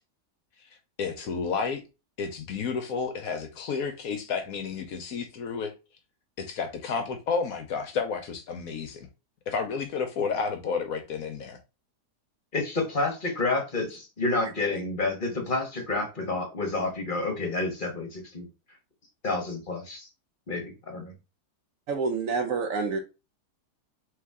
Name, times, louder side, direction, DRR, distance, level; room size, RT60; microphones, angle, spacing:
voice 1, 1.0-1.8 2.2-5.7 6.4-9.1 9.5-11.6, left 5 dB, 65° left, 1.0 m, -31 dB
voice 2, 12.5-18.5 19.2-20.1 20.5-21.1, left 3 dB, 35° left, 1.0 m, -29 dB
voice 3, 21.9-23.0, right 4 dB, 70° right, 0.8 m, -27 dB
3.8 x 3.2 x 3.5 m
omnidirectional pair, 1.8 m